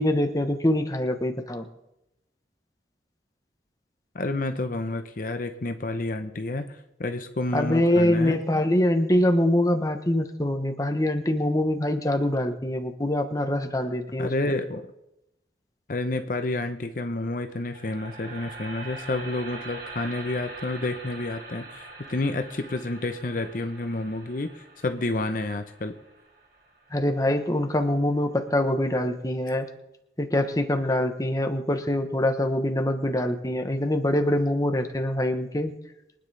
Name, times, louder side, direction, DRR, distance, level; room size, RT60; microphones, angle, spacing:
voice 1, 0.0-1.7 7.5-14.3 26.9-29.7 30.2-35.7, left 1 dB, 20° left, 6 dB, 1.0 m, -24 dB
voice 2, 4.1-8.4 14.2-14.8 15.9-26.0, left 2 dB, 50° left, 7 dB, 0.8 m, -30 dB
sound 1, 17.5-27.6, right 2 dB, 60° right, 3.4 m, -43 dB
23.5 x 9.8 x 3.4 m, 0.88 s
head